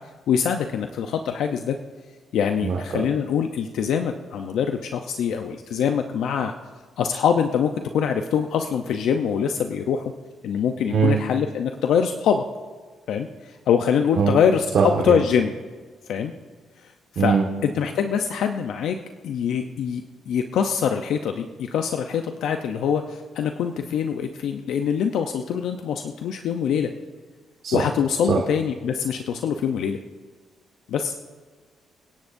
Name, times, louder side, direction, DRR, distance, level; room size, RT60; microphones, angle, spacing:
voice 1, 0.3-1.8 2.3-6.5 7.0-10.1 10.4-12.4 13.1-15.5 16.1-16.3 17.1-19.0 19.2-26.9 27.7-30.0 30.9-31.1, left 7 dB, 75° left, 6 dB, 0.7 m, -24 dB
voice 2, 2.6-3.0 10.9-11.2 14.2-14.3 14.7-15.2 17.2-17.4 27.6-27.9 28.3-28.4, right 6 dB, 65° right, -2 dB, 1.8 m, -21 dB
28.5 x 10.5 x 2.7 m, 1.5 s
cardioid pair, 90°, 0 cm